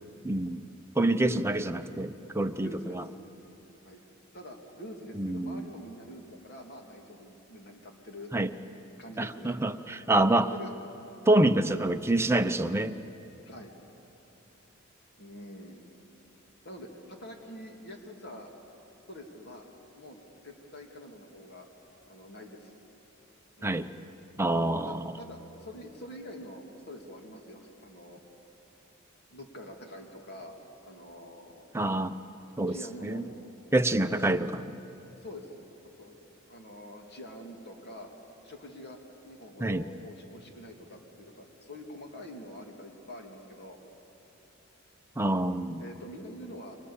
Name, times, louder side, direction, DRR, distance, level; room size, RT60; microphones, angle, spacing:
voice 1, 0.2-0.6 1.0-3.0 5.2-5.7 8.3-8.5 9.2-10.5 11.3-13.0 23.6-23.9 24.4-25.0 31.7-32.2 32.6-32.8 33.0-33.2 33.7-34.6 39.6-39.9 45.2-45.8, right 1 dB, 10° right, 7 dB, 0.7 m, -26 dB
voice 2, 1.0-1.5 2.6-3.0 3.8-4.0 4.3-8.3 9.0-9.6 10.4-10.7 11.7-11.9 13.4-13.8 15.2-15.8 16.6-18.5 19.1-19.6 20.0-21.7 22.1-22.7 23.6-23.8 24.8-28.2 29.3-30.5 30.8-31.7 32.7-33.3 34.1-34.3 35.1-35.5 36.0-36.2 36.5-38.1 38.4-43.8 45.8-46.8, equal, 50° left, 2 dB, 2.9 m, -45 dB
28.5 x 24.5 x 7.3 m, 3.0 s
head